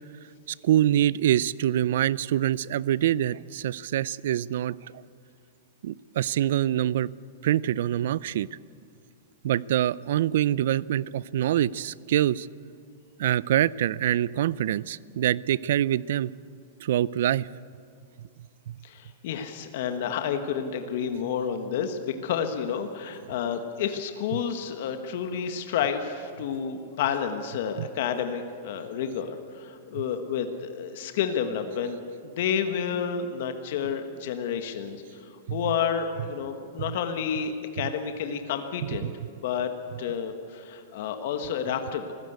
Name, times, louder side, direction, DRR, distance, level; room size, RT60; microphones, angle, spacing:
voice 1, 0.6-4.8 5.8-7.1 7.4-8.5 9.4-12.5 13.2-16.3 16.8-17.5 18.7-18.8 27.8-27.9 35.5-35.6 38.8-39.1, right 12 dB, 65° right, 22 dB, 0.4 m, -25 dB
voice 2, 18.8-32.0 32.2-39.1 39.4-39.7 40.0-42.1, left 7 dB, 55° left, 7 dB, 1.5 m, -30 dB
24.5 x 15.5 x 8.1 m, 2.3 s
supercardioid pair, 165°, 0 cm